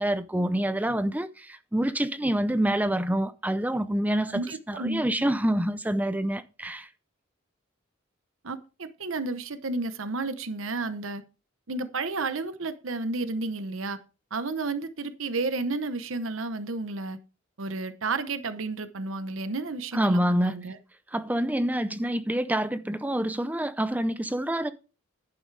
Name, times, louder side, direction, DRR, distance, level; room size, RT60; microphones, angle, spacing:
voice 1, 0.0-4.4 4.7-6.9 19.9-20.6 21.1-24.7, right 1 dB, 10° right, 0.5 m, -27 dB
voice 2, 4.3-5.0 8.4-11.2 11.7-14.0 14.3-17.2 17.6-20.8, right 3 dB, 70° right, 0.9 m, -32 dB
11.0 x 9.1 x 3.3 m
head